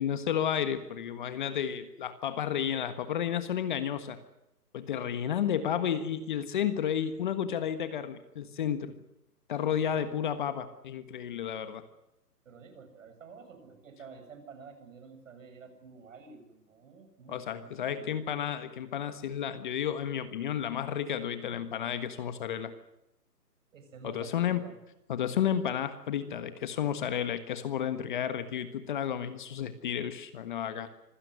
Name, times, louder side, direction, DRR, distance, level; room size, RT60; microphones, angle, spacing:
voice 1, 0.0-4.2 4.7-8.9 9.5-11.8 17.3-22.7 24.0-24.6 25.1-30.9, left 9 dB, 30° left, 10 dB, 1.5 m, -32 dB
voice 2, 9.7-10.1 12.5-18.2 23.7-24.8, right 5 dB, 50° right, 7 dB, 7.3 m, -50 dB
26.0 x 16.5 x 9.5 m, 0.87 s
hypercardioid pair, 160°, 49 cm